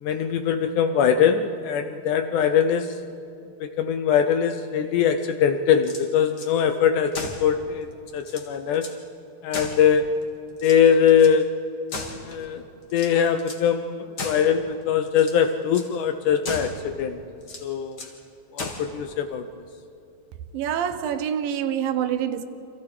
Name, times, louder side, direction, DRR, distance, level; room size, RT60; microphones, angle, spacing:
voice 1, 0.0-3.1 3.6-8.9 9.4-10.1 10.6-11.7 12.2-12.6 12.9-17.2 17.6-18.1 18.5-19.4, left 7 dB, 75° left, 2.0 m, -22 dB
sound 1, 5.7-6.5 7.1-7.5 7.9-8.0 8.2-9.0 9.5-10.2 10.6-11.4 11.9-12.5 12.9-13.7 14.2-14.6 15.1-15.4 15.7-15.9 16.4-16.8 17.4-18.2 18.6-18.9, left 3 dB, 35° left, 2.1 m, -36 dB
voice 2, 20.5-22.5, right 9 dB, 75° right, 2.6 m, -26 dB
29.5 x 26.5 x 4.9 m
omnidirectional pair, 4.2 m